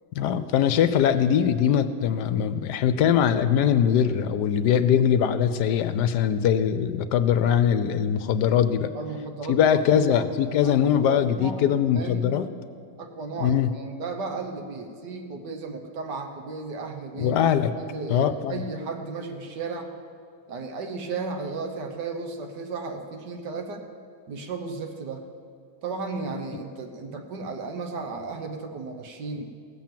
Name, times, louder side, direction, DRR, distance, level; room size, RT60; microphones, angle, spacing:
voice 1, 0.2-8.9 9.5-12.5 13.4-13.7 17.2-17.7 18.1-18.6, left 9 dB, 75° left, 11 dB, 1.1 m, -22 dB
voice 2, 8.9-10.2 10.6-12.3 13.0-17.4 17.8-19.9 20.5-23.8 24.3-25.2 25.8-29.5, right 4 dB, 70° right, 4 dB, 1.7 m, -34 dB
17.0 x 7.3 x 7.5 m, 2.3 s
omnidirectional pair, 1.9 m